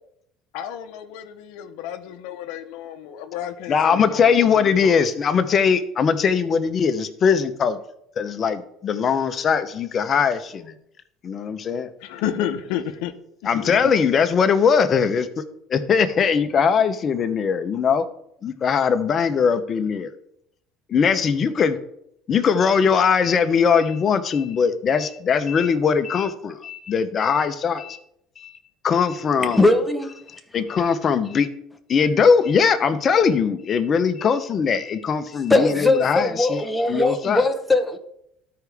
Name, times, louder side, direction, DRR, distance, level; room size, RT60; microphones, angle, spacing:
voice 1, 0.5-5.0 12.0-13.1 13.4-13.9 29.4-29.7, left 10 dB, 80° left, 0.7 m, -31 dB
voice 2, 3.7-7.8 8.2-10.7 11.2-11.9 13.4-15.3 15.7-18.1 18.4-20.1 20.9-21.8 22.3-28.0 28.4-28.6 28.8-29.6 30.5-31.5 31.9-36.6 36.9-37.4, left 6 dB, 40° left, 0.8 m, -20 dB
voice 3, 29.5-30.2 35.5-38.0, left 2 dB, 10° left, 1.0 m, -20 dB
13.0 x 4.7 x 3.5 m
supercardioid pair, 105°, 0 cm